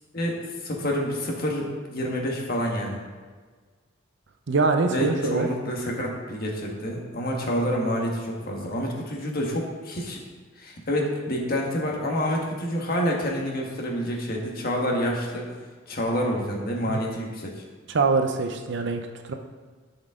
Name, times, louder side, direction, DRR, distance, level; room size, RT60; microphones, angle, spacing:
voice 1, 0.1-3.0 4.9-10.2 10.6-15.4 15.9-17.5, equal, 45° left, -1 dB, 1.5 m, -28 dB
voice 2, 4.5-5.5 16.9-17.0 17.9-19.3, right 4 dB, 60° right, 5 dB, 0.6 m, -24 dB
13.0 x 5.4 x 3.7 m, 1.4 s
head